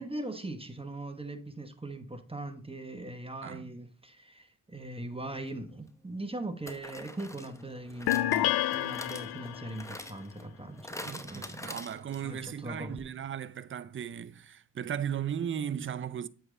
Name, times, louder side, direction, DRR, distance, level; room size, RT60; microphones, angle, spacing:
voice 1, 0.0-11.7 12.2-13.0, right 2 dB, 15° right, 1.1 m, -40 dB
voice 2, 3.4-3.7 11.0-16.3, right 9 dB, 30° right, 0.5 m, -36 dB
sound 1, 5.4-5.5 6.7-12.4 12.7-12.8 13.0-13.1, left 1 dB, 5° left, 0.7 m, -45 dB
sound 2, 8.1-9.8, left 15 dB, 60° left, 0.5 m, -29 dB
7.7 x 3.8 x 3.3 m
supercardioid pair, 45°, 43 cm